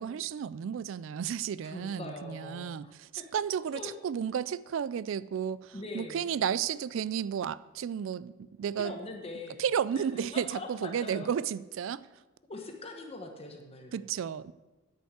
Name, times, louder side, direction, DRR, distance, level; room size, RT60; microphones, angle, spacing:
voice 1, 0.0-8.9 9.6-12.0 13.9-14.5, right 8 dB, 65° right, 18 dB, 0.3 m, -33 dB
voice 2, 1.6-3.2 3.7-3.9 5.7-6.3 8.8-9.6 10.1-11.3 12.5-14.0, left 2 dB, 30° left, 3 dB, 1.1 m, -42 dB
10.0 x 5.4 x 7.9 m, 1.1 s
head